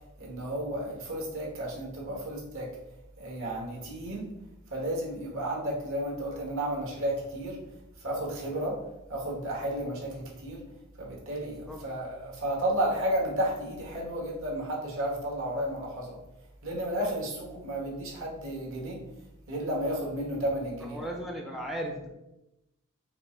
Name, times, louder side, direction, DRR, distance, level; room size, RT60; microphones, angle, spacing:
voice 1, 0.2-2.7 3.2-4.3 4.7-7.6 8.0-8.8 9.1-10.6 11.0-16.2 16.6-19.0 19.5-21.0, right 1 dB, 65° right, -3 dB, 1.4 m, -32 dB
voice 2, 11.4-11.8 20.8-22.1, right 1 dB, ahead, 1 dB, 0.4 m, -37 dB
4.5 x 2.5 x 4.3 m, 0.93 s
head